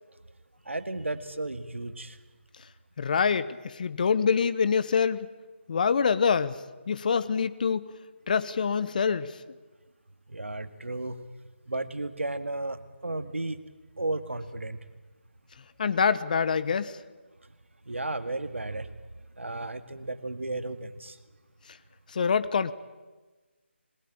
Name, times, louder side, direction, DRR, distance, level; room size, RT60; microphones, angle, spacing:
voice 1, 0.7-2.2 10.3-11.2 11.7-13.6 14.0-14.8 17.9-18.9 19.4-21.2, right 2 dB, 85° right, 10 dB, 2.0 m, -34 dB
voice 2, 3.0-5.3 5.7-6.5 6.9-7.9 8.3-9.3 15.8-16.9 22.1-22.7, left 6 dB, 40° left, 15 dB, 1.1 m, -25 dB
21.5 x 21.0 x 8.8 m, 1.3 s
figure-of-eight pair, 155°, 7 cm